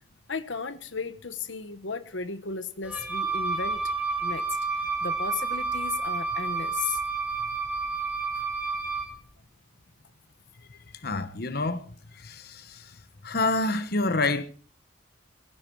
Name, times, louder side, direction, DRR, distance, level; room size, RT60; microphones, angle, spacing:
voice 1, 0.3-3.8 4.2-4.5 5.0-7.0 8.4-8.5, left 5 dB, 80° left, 1.3 m, -35 dB
Wind instrument woodwind instrument, 2.8-9.2, right 4 dB, 5° right, 3.5 m, -30 dB
voice 2, 11.0-11.8 12.1-12.9 13.2-14.4, left 2 dB, 55° left, 1.2 m, -27 dB
18.0 x 16.0 x 4.7 m
head